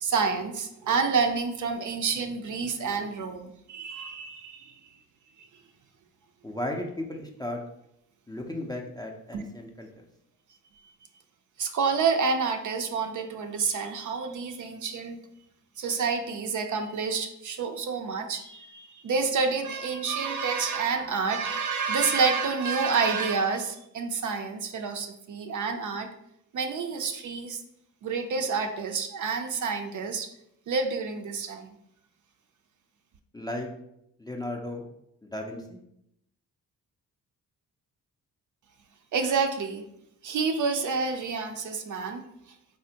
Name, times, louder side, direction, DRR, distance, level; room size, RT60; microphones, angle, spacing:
voice 1, 0.0-4.8 9.3-9.4 11.6-15.2 15.8-26.1 26.5-27.6 28.0-30.3 30.7-31.7 39.1-39.8 40.2-42.2, right 5 dB, 50° right, 6 dB, 0.4 m, -28 dB
voice 2, 6.4-7.6 8.3-9.9 33.3-33.7 34.2-34.9 35.2-35.8, left 1 dB, 10° left, 1 dB, 0.4 m, -35 dB
3.3 x 2.0 x 2.7 m, 0.77 s
supercardioid pair, 40°, 40 cm